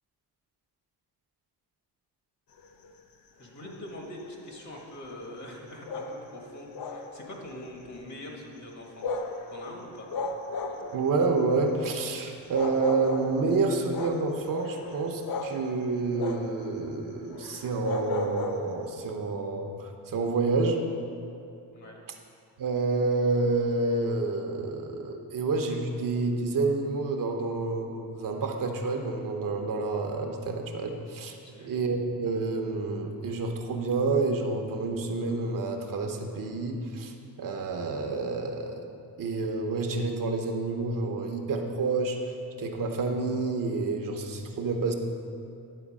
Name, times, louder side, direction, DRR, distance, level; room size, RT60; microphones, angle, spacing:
sound 1, 2.6-2.9 3.4-3.8 4.2-4.6 5.9-6.3 6.7-7.5 7.8-8.1 8.9-9.5 10.1-11.1 12.0-12.1 12.5-13.4 13.9-15.7 16.2-16.6 16.9-17.0 17.3-18.9, left 3 dB, 60° left, 0.8 m, -34 dB
voice 1, 3.4-9.2 9.5-10.1 21.7-22.0 31.4-31.7, left 1 dB, 45° left, 0 dB, 1.7 m, -43 dB
voice 2, 10.9-20.8 22.6-31.4 31.6-37.1 37.4-38.8 39.2-42.2 42.6-44.9, right 3 dB, 55° right, 3 dB, 0.9 m, -29 dB
10.0 x 4.5 x 7.4 m, 2.6 s
cardioid pair, 145°, 40 cm